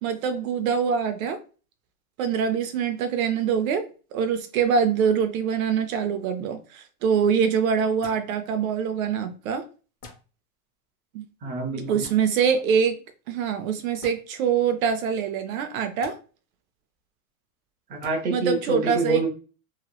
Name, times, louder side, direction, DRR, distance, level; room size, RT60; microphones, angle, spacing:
voice 1, 0.0-1.4 2.2-3.9 4.1-9.6 11.1-11.2 11.9-13.0 13.3-16.2 18.3-19.2, right 7 dB, 65° right, 0.5 m, -24 dB
sound 1, 8.0-8.3 10.0-10.2 12.0-12.2 14.0-14.2 16.0-16.1 18.0-18.1, left 4 dB, 20° left, 0.5 m, -44 dB
voice 2, 11.4-12.1 17.9-19.3, right 4 dB, 20° right, 0.7 m, -26 dB
2.9 x 2.8 x 2.3 m
supercardioid pair, 155°, 46 cm